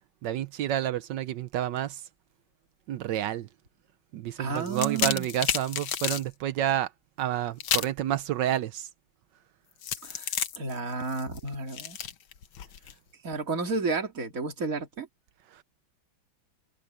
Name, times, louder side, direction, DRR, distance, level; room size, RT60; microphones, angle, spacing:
voice 1, 0.2-2.0 2.9-3.5 4.1-6.9 7.2-8.9, right 11 dB, 70° right, 1.2 m, -29 dB
voice 2, 4.4-5.3 10.0-12.0 13.2-15.1, right 4 dB, 40° right, 3.1 m, -32 dB
sound 1, 4.6-6.2 7.6-8.0 9.8-12.9, left 9 dB, 80° left, 2.0 m, -31 dB
omnidirectional pair, 2.2 m